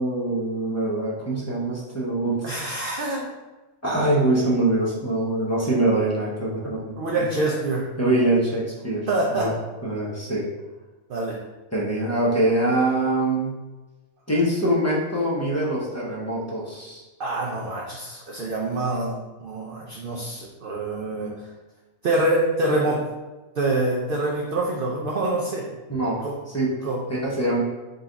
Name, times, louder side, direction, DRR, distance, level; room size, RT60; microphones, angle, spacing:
voice 1, 0.0-2.3 3.8-6.9 8.0-9.5 9.8-10.5 11.7-13.5 14.3-17.0 25.9-26.7 27.1-27.6, right 1 dB, 20° left, -5 dB, 0.5 m, -24 dB
voice 2, 2.4-3.3 7.0-7.9 9.1-9.5 11.1-11.4 17.2-21.3 22.0-23.0 23.6-25.7 26.2-26.3 26.8-27.0, right 2 dB, 65° right, -2 dB, 0.5 m, -25 dB
3.9 x 2.3 x 3.8 m, 1.1 s
omnidirectional pair, 1.4 m